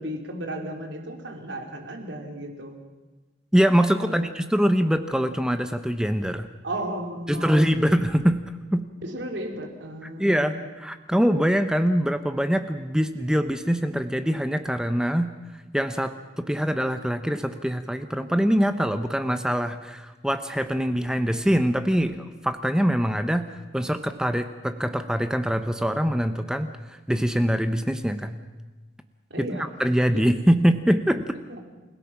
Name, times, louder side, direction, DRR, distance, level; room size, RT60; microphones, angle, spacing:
voice 1, 0.0-2.8 4.0-4.3 6.6-7.7 9.0-10.8 29.3-29.7 31.5-31.6, right 1 dB, 75° right, 3 dB, 3.6 m, -34 dB
voice 2, 3.5-6.5 7.3-8.4 8.7-8.9 10.2-15.3 15.7-23.5 23.7-26.7 27.1-28.3 29.4-31.2, equal, 5° right, 9 dB, 0.8 m, -23 dB
28.5 x 17.5 x 6.0 m, 1.2 s
head